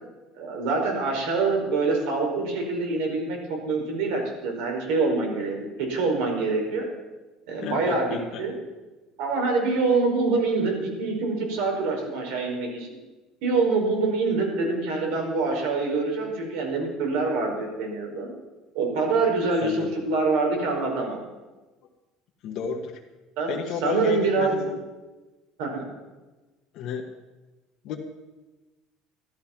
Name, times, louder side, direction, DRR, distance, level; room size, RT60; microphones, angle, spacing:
voice 1, 0.3-5.5 5.9-6.9 7.5-8.5 9.2-12.9 13.4-18.3 18.7-21.2 23.4-24.6 25.6-25.8, right 3 dB, 80° right, 1 dB, 4.9 m, -25 dB
voice 2, 7.6-8.4 19.6-20.0 22.4-23.0 23.5-24.8 26.7-27.1 27.8-27.9, left 6 dB, 55° left, 2 dB, 1.4 m, -32 dB
14.0 x 13.0 x 5.9 m, 1.2 s
cardioid pair, 160°, 0 cm